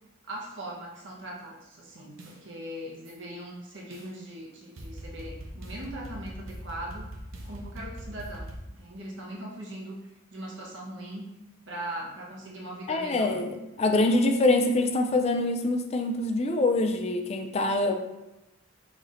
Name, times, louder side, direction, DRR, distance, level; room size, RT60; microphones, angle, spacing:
voice 1, 0.3-7.1 7.4-8.5 8.8-11.3 11.7-13.4 17.9-18.0, right 1 dB, 60° right, -2 dB, 1.0 m, -40 dB
sound 1, 2.2-2.4 3.1-3.2 3.9-4.1 4.8-8.6, right 1 dB, 85° right, 0.8 m, -41 dB
voice 2, 12.9-18.0, left 2 dB, 30° left, 5 dB, 0.3 m, -25 dB
4.9 x 4.2 x 2.5 m, 0.96 s
head